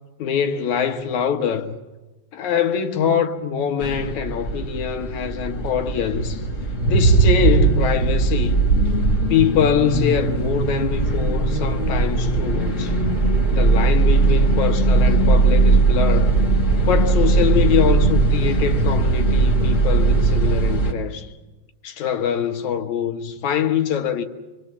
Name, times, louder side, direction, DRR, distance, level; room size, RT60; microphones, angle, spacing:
voice 1, 0.2-1.7 2.3-6.4 6.9-8.6 9.3-12.9 13.5-16.3 16.9-21.3 21.8-24.2, left 8 dB, 75° left, 2.6 m, -23 dB
sound 1, 3.8-20.9, right 3 dB, 25° left, 2.6 m, -19 dB
27.5 x 21.0 x 7.0 m
omnidirectional pair, 3.4 m